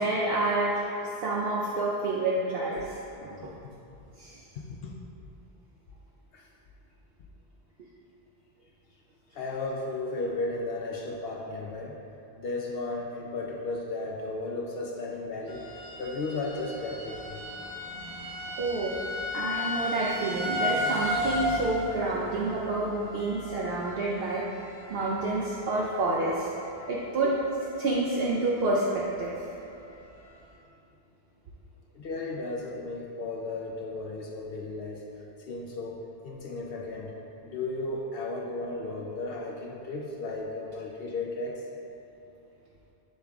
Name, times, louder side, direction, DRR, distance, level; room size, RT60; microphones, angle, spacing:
voice 1, 0.0-3.5 4.2-4.4 18.6-19.0 19.3-24.4 24.9-26.5 26.9-27.3 27.8-29.3, right 2 dB, 65° right, -5 dB, 0.8 m, -28 dB
voice 2, 4.6-5.0 6.3-6.5 9.3-12.0 12.4-15.7 16.0-17.4 27.2-27.3 31.9-35.0 35.4-37.1 37.4-41.7, left 2 dB, 70° left, -1 dB, 0.7 m, -34 dB
sound 1, 15.5-26.2 26.4-26.9 27.4-27.5 27.9-28.0, left 1 dB, 50° left, 1.6 m, -34 dB
7.8 x 3.6 x 3.4 m, 2.7 s
omnidirectional pair, 1.1 m